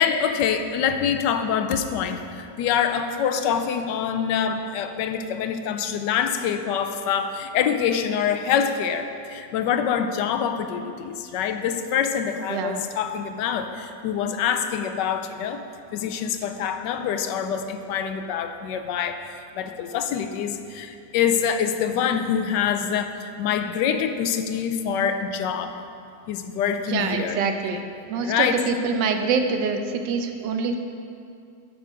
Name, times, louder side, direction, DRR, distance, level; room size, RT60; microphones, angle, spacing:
voice 1, 0.0-15.6 15.9-25.7 26.3-27.4 28.2-28.6, left 8 dB, 80° left, 8 dB, 1.2 m, -25 dB
voice 2, 12.5-12.8 26.9-27.8 28.1-30.8, right 5 dB, 85° right, 6 dB, 1.4 m, -25 dB
9.2 x 6.3 x 5.0 m, 2.4 s
omnidirectional pair, 1.9 m